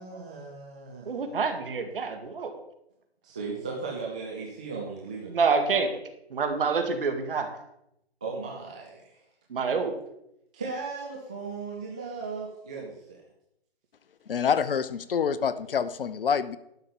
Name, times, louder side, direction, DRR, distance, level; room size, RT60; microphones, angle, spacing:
voice 1, 0.0-1.2 3.2-5.6 8.2-9.2 10.5-13.2, right 4 dB, 5° right, -3 dB, 0.3 m, -37 dB
voice 2, 1.1-2.5 5.3-5.9 6.3-7.5 9.5-10.0, right 5 dB, 55° right, 6 dB, 2.1 m, -27 dB
voice 3, 14.3-16.6, left 7 dB, 60° left, 14 dB, 0.8 m, -26 dB
11.5 x 5.7 x 6.9 m, 0.80 s
figure-of-eight pair, 140°, 32 cm